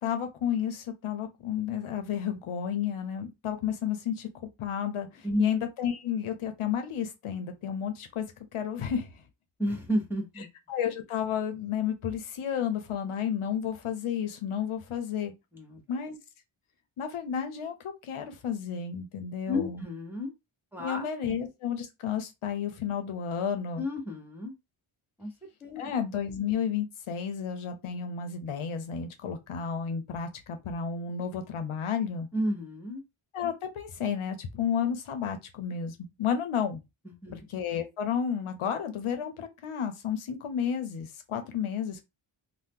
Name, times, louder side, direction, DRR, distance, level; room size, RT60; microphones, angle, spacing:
voice 1, 0.0-4.3 4.6-8.3 8.5-9.2 10.7-15.3 15.9-16.2 17.0-19.8 20.8-23.8 25.8-32.3 33.3-36.8 37.5-42.0, left 8 dB, 85° left, 0.7 m, -32 dB
voice 2, 9.6-10.5 15.5-15.8 19.5-20.3 20.7-21.4 23.8-24.5 25.2-25.3 25.6-25.9 32.3-33.0 37.0-37.4, left 1 dB, 5° right, 1.2 m, -32 dB
2.7 x 2.1 x 3.6 m
wide cardioid pair, 70°, 49 cm